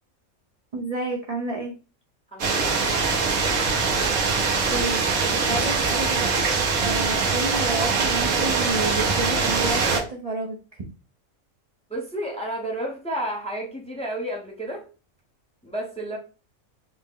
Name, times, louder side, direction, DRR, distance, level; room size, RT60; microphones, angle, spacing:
voice 1, 0.7-1.7 4.7-5.0 5.5-6.5 6.8-10.8, right 2 dB, 45° right, 0.5 m, -30 dB
voice 2, 2.3-3.4 11.9-14.9 15.6-16.2, right 1 dB, 5° left, 0.7 m, -32 dB
sound 1, 2.4-10.0, right 4 dB, 85° right, 1.4 m, -23 dB
4.3 x 2.1 x 3.7 m
omnidirectional pair, 1.4 m